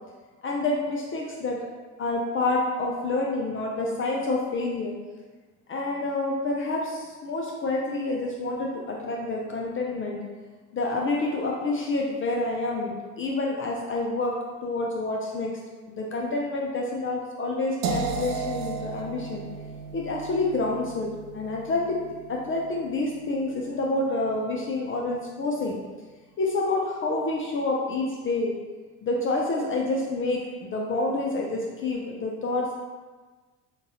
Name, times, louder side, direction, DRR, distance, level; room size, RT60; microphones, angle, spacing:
voice 1, 0.4-1.6 2.0-5.0 5.7-10.2 10.7-14.4 14.6-15.5 15.9-19.4 19.9-25.8 26.4-28.5 29.0-32.7, left 2 dB, 30° left, -2 dB, 0.5 m, -28 dB
sound 1, 17.8-23.7, right 5 dB, 40° right, 0.4 m, -35 dB
3.8 x 2.4 x 2.7 m, 1.3 s
hypercardioid pair, 70°, 46 cm